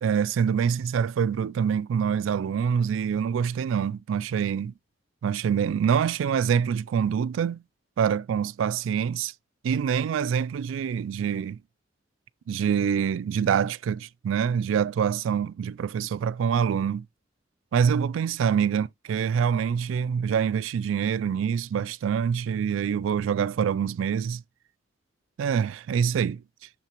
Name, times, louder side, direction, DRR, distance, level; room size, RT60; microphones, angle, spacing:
voice 1, 0.0-4.7 5.2-7.6 8.0-9.3 9.6-11.6 12.5-17.1 17.7-24.4 25.4-26.4, right 7 dB, 80° right, 0.3 m, -25 dB
6.8 x 5.7 x 2.9 m
head